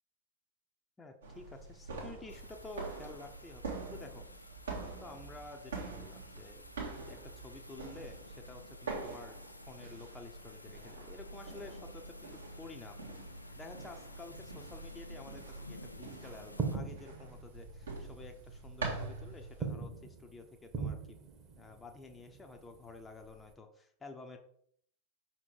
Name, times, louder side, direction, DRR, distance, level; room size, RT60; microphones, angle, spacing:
voice 1, 1.0-4.2 4.7-6.6 7.1-9.4 9.7-13.0 13.5-21.2 21.6-24.4, left 3 dB, 15° left, 4 dB, 0.9 m, -51 dB
sound 1, 1.2-19.7, right 3 dB, 70° right, 2.1 m, -45 dB
sound 2, 2.3-16.8, left 1 dB, 85° left, 0.7 m, -54 dB
sound 3, 14.3-23.5, right 4 dB, 30° right, 1.3 m, -43 dB
6.1 x 4.5 x 4.7 m, 0.64 s
figure-of-eight pair, 90°, 0 cm